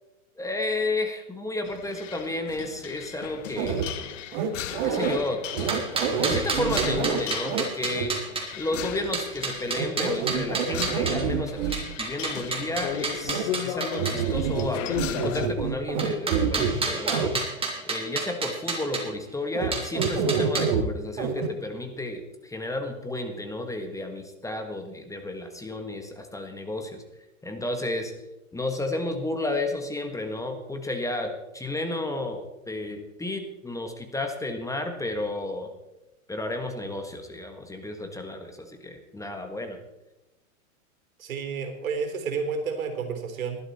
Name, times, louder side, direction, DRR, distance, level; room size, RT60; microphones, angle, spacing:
voice 1, 0.4-4.2 4.8-5.8 6.2-8.1 8.6-17.4 17.9-27.0 27.4-28.1 28.5-35.7 36.3-39.8, left 2 dB, 10° left, 5 dB, 1.6 m, -32 dB
sound 1, 1.6-15.5, left 10 dB, 60° left, 1.4 m, -36 dB
sound 2, 3.6-3.9 4.3-5.2 5.5-7.6 8.0-8.1 9.7-11.8 13.3-13.4 13.9-14.7 15.0-16.7 17.1-17.3 19.5-19.7 19.9-20.8 21.2-21.5, right 6 dB, 50° right, 2.1 m, -27 dB
sound 3, 5.5-8.4 9.1-11.2 11.7-14.2 16.0-19.0 19.7-20.6, right 4 dB, 15° right, 3.2 m, -30 dB
voice 2, 41.2-43.6, right 5 dB, 75° right, 5 dB, 3.7 m, -30 dB
19.0 x 12.5 x 4.3 m, 0.96 s
hypercardioid pair, 115°, 41 cm